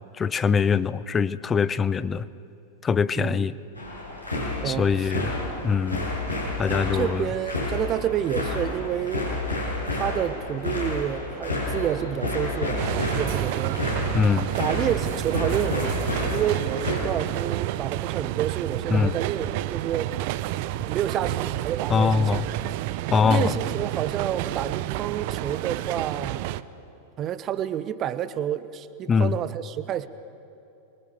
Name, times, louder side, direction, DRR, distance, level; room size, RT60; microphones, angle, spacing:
voice 1, 0.2-2.2 2.8-3.5 4.6-5.4 5.6-6.1 6.6-7.3 14.1-14.5 18.9-19.1 21.9-22.5 23.1-23.6 29.1-29.4, left 6 dB, 20° left, 17 dB, 0.7 m, -23 dB
voice 2, 3.2-3.5 4.6-5.1 6.9-9.3 9.9-13.8 14.6-16.0 16.3-20.2 20.8-22.4 23.2-26.5 27.2-30.1, right 10 dB, 30° right, 14 dB, 1.0 m, -29 dB
sound 1, 3.8-16.9, left 2 dB, 85° left, 7.6 m, -30 dB
sound 2, 12.8-26.6, right 16 dB, 50° right, 0.6 m, -30 dB
27.0 x 22.5 x 6.9 m, 2.8 s
figure-of-eight pair, 90°, 0 cm